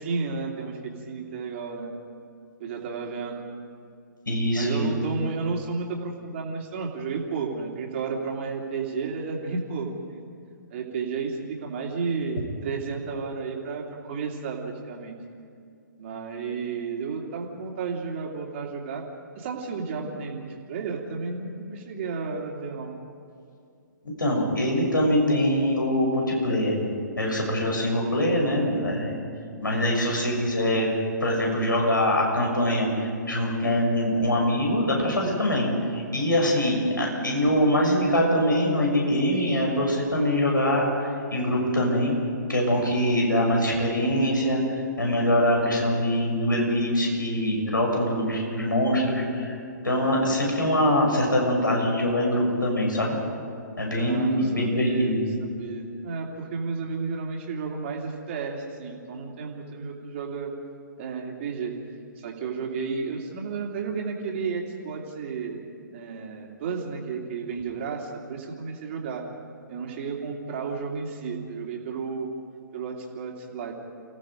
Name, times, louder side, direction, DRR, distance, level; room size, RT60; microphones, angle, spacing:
voice 1, 0.0-1.9 2.6-3.4 4.5-10.2 10.7-15.2 16.0-19.0 19.3-23.0 37.3-37.7 54.0-60.5 61.0-61.7 62.2-65.6 65.9-69.2 69.7-72.3 72.7-73.7, right 5 dB, 40° right, 0 dB, 3.2 m, -32 dB
voice 2, 4.3-4.9 24.2-26.8 27.2-29.2 29.6-32.9 33.3-42.1 42.5-44.6 45.0-49.6 49.8-53.2 53.8-55.2, equal, 80° left, -1 dB, 6.9 m, -23 dB
29.5 x 16.5 x 5.2 m, 2.4 s
figure-of-eight pair, 125°, 11 cm